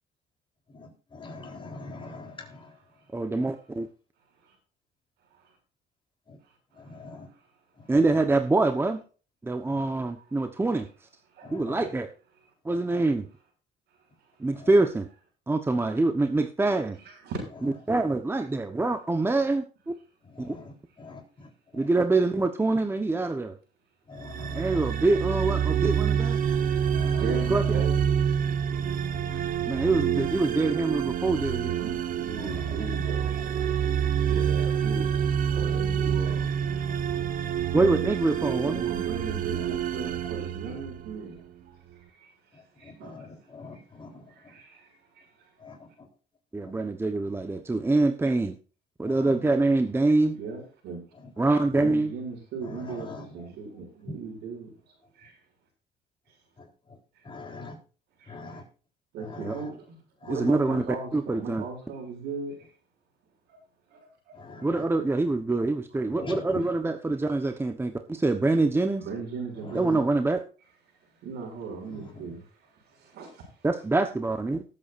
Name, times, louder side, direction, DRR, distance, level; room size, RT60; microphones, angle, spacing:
voice 1, 0.8-2.6 6.9-7.3 11.4-11.8 14.6-14.7 20.4-20.7 21.0-21.2 24.1-24.9 26.9-27.2 32.6-32.8 42.8-43.3 43.5-44.1 45.6-45.7 49.0-49.2 52.9-53.2 57.3-57.7 58.3-58.6 59.3-59.4 64.4-64.8 66.2-66.4 71.9-72.0, left 3 dB, 30° left, 3.8 m, -42 dB
voice 2, 3.1-3.9 7.9-9.0 9.4-10.8 11.5-12.1 12.6-13.3 14.4-15.1 15.5-17.0 17.9-19.6 20.4-20.5 21.7-23.6 24.6-26.4 27.5-27.8 29.7-31.8 37.7-38.8 46.5-48.6 49.0-50.4 51.4-52.1 59.4-59.5 60.3-60.8 61.1-61.7 64.6-69.0 69.7-70.4 73.6-74.6, right 2 dB, 15° right, 1.1 m, -25 dB
voice 3, 11.3-11.9 17.0-17.4 27.2-28.4 29.3-29.7 31.8-33.4 34.0-36.6 38.4-42.3 42.8-43.3 43.6-43.8 44.3-45.2 49.3-49.5 50.4-51.0 51.7-54.7 55.1-55.4 58.2-58.6 59.1-60.0 60.3-62.5 63.5-63.6 63.9-64.0 64.2-64.7 69.0-70.0 71.2-73.5, right 4 dB, 80° right, 6.8 m, -38 dB
sound 1, 24.2-41.3, right 8 dB, 55° right, 1.3 m, -27 dB
19.0 x 8.6 x 2.6 m
cardioid pair, 110°, 17 cm